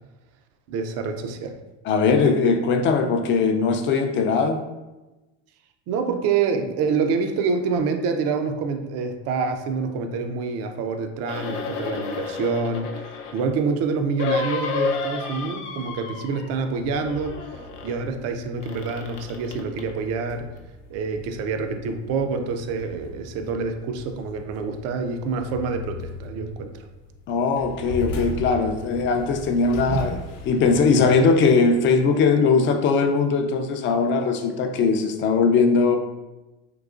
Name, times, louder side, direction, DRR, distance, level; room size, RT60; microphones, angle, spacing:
voice 1, 0.7-1.6 5.9-17.4 17.8-20.5 20.9-26.7 29.9-30.0, right 5 dB, 45° right, 6 dB, 0.4 m, -27 dB
voice 2, 1.8-4.6 27.3-30.1 30.5-36.0, left 4 dB, 35° left, 5 dB, 0.4 m, -20 dB
sound 1, 11.2-13.5 14.2-16.7 16.9-18.0 18.6-19.9 20.6-20.7, left 5 dB, 90° left, 0.6 m, -31 dB
sound 2, 16.5-31.9, left 1 dB, 60° left, 0.8 m, -39 dB
3.8 x 2.7 x 2.3 m, 1.1 s
supercardioid pair, 110°, 37 cm